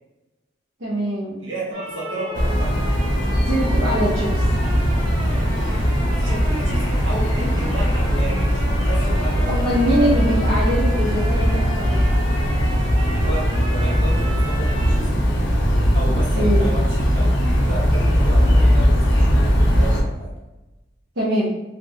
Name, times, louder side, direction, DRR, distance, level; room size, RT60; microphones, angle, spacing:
voice 1, 0.8-1.4 3.4-4.4 9.5-12.0 16.4-16.7 21.2-21.5, equal, 65° right, -9 dB, 0.7 m, -22 dB
voice 2, 1.4-2.8 5.9-9.5 13.1-15.3 15.9-20.3, right 1 dB, 80° right, -6 dB, 1.2 m, -32 dB
sound 1, 1.7-15.0, right 1 dB, 25° right, 0.4 m, -36 dB
sound 2, 2.3-20.0, equal, 70° left, 0.7 m, -19 dB
3.3 x 2.4 x 2.7 m, 1.0 s
head